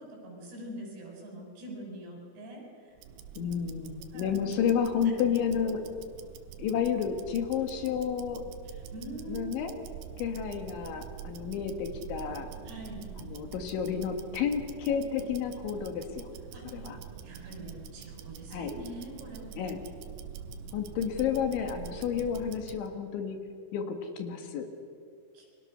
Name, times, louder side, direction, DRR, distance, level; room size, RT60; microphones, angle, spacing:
voice 1, 0.0-3.0 4.1-4.4 8.6-9.5 12.6-13.1 16.5-16.9 17.2-19.7 25.3-25.5, right 1 dB, 60° right, -1 dB, 8.8 m, -44 dB
Tick-tock, 2.9-22.9, right 8 dB, 90° right, 3.8 m, -45 dB
voice 2, 3.4-5.8 6.6-8.4 9.3-9.7 10.2-12.5 13.2-16.3 16.7-17.0 18.5-18.7 19.6-19.8 20.7-23.4 23.7-24.7, left 7 dB, 70° left, 5 dB, 3.9 m, -31 dB
29.5 x 24.5 x 6.7 m, 2.2 s
omnidirectional pair, 5.8 m